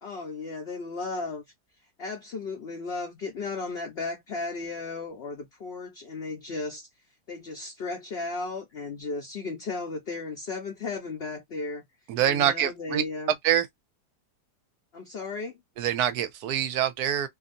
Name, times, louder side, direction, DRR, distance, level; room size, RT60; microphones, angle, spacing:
voice 1, 0.0-1.4 2.0-6.9 7.3-11.9 12.3-13.3 14.9-15.6, left 3 dB, 50° left, 0.8 m, -35 dB
voice 2, 12.1-13.0 13.4-13.7 15.8-17.3, right 10 dB, 75° right, 1.0 m, -25 dB
2.8 x 2.6 x 2.5 m
omnidirectional pair, 1.7 m